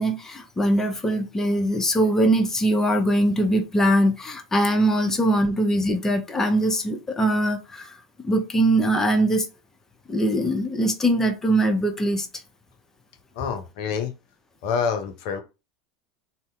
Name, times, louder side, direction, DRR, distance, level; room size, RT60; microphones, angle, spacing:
voice 1, 0.0-8.0 8.2-9.5 10.1-12.3, right 1 dB, 15° left, 0.6 m, -22 dB
voice 2, 13.3-14.1 14.6-15.4, left 6 dB, 60° left, 0.5 m, -27 dB
2.7 x 2.1 x 3.4 m
hypercardioid pair, 85°, 3 cm